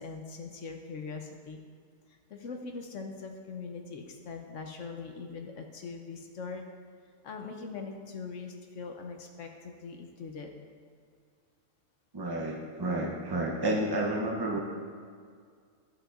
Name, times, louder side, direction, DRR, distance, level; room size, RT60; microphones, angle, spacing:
voice 1, 0.0-1.6 2.1-6.6 7.2-10.5, left 4 dB, 65° left, 3 dB, 1.0 m, -41 dB
voice 2, 12.1-14.6, right 1 dB, 40° right, -1 dB, 0.3 m, -30 dB
14.0 x 5.9 x 2.4 m, 2.1 s
omnidirectional pair, 1.6 m